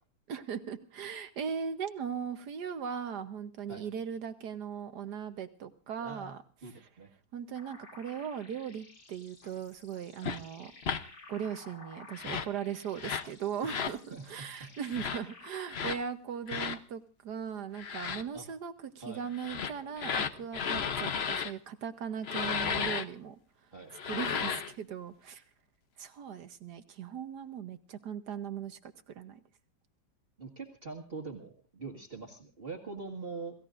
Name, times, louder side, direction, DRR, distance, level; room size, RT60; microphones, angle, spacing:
voice 1, 0.3-6.4 6.8-6.9 7.3-10.7 11.3-23.4 24.1-25.4 26.0-29.4, right 7 dB, 65° right, 10 dB, 1.4 m, -39 dB
voice 2, 6.0-7.1 13.6-13.8 14.1-14.2 18.3-18.5 19.0-19.2 23.7-23.9 30.4-33.5, right 4 dB, 30° right, 2 dB, 1.9 m, -43 dB
sound 1, 7.6-15.6, left 3 dB, 65° left, 3.4 m, -54 dB
sound 2, 10.2-10.4 10.8-11.0 12.1-12.5 13.0-13.3 13.6-14.0 14.9-15.2 15.7-16.0 16.5-16.8 17.8-18.2 19.3-21.5 22.2-23.0 23.9-24.7, left 7 dB, 50° left, 0.8 m, -33 dB
28.5 x 16.0 x 2.5 m, 0.35 s
omnidirectional pair, 2.0 m